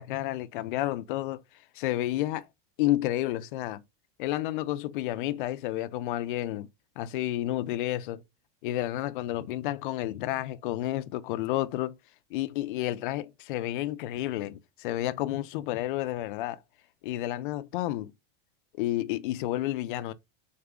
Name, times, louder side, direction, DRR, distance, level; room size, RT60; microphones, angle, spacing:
voice 1, 0.0-1.4 1.7-2.5 2.8-3.8 4.2-6.7 7.0-8.2 8.6-12.0 12.3-16.6 17.0-18.1 18.8-20.1, left 15 dB, 55° left, 0.4 m, -30 dB
3.9 x 3.6 x 3.5 m
supercardioid pair, 175°, 32 cm